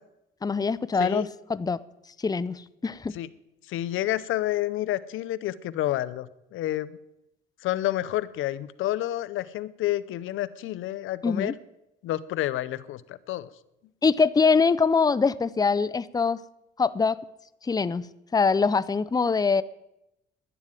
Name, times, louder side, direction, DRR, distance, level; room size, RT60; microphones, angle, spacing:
voice 1, 0.4-1.8 2.2-3.1 11.2-11.5 14.0-16.4 16.8-17.2 17.6-18.1 18.3-19.6, left 5 dB, 20° left, 17 dB, 0.6 m, -23 dB
voice 2, 3.7-7.0 7.6-11.5 12.0-13.5, left 14 dB, 85° left, 18 dB, 0.7 m, -29 dB
11.0 x 10.5 x 9.0 m, 0.86 s
cardioid pair, 90°, 20 cm